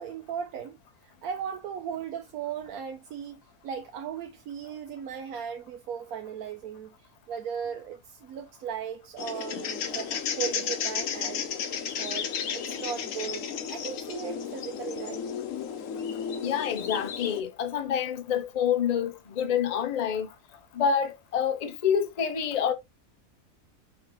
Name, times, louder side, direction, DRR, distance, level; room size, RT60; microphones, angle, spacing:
voice 1, 0.0-11.5 12.0-15.2, right 8 dB, 75° right, 1.1 m, -37 dB
sound 1, 9.2-17.4, left 7 dB, 65° left, 1.1 m, -33 dB
voice 2, 16.4-20.3 20.7-22.7, left 8 dB, 50° left, 0.5 m, -27 dB
5.5 x 3.1 x 3.0 m
omnidirectional pair, 1.6 m